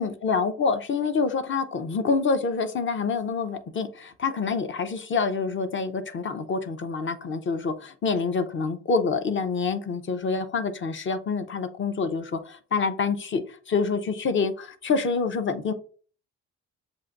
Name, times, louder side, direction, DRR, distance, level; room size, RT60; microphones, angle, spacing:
voice 1, 0.0-15.7, left 4 dB, 40° left, 0.6 m, -27 dB
7.2 x 2.5 x 2.5 m
cardioid pair, 90°, 30 cm